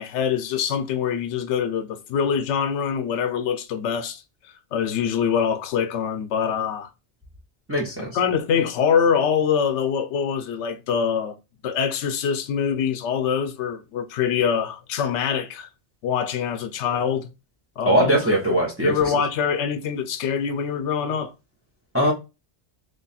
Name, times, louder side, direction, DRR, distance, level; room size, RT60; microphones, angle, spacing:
voice 1, 0.0-4.2 4.7-6.9 8.1-11.3 11.6-15.7 16.0-17.3 17.8-18.2 18.5-21.3, left 7 dB, 75° left, 0.9 m, -24 dB
voice 2, 7.7-8.2 17.9-19.0 21.9-22.1, right 1 dB, 15° right, 0.6 m, -20 dB
3.4 x 2.3 x 4.0 m
omnidirectional pair, 1.2 m